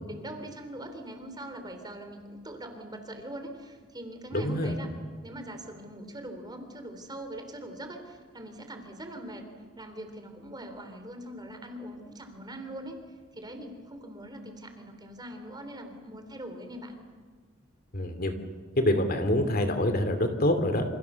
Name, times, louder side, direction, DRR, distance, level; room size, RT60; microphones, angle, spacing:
voice 1, 0.0-4.9 5.2-9.4 9.8-13.0 13.3-17.0, right 1 dB, 20° right, 6 dB, 3.6 m, -42 dB
voice 2, 4.3-4.7 17.9-18.3 18.8-20.8, left 1 dB, 50° left, 8 dB, 2.6 m, -26 dB
28.0 x 27.5 x 7.0 m, 1.5 s
head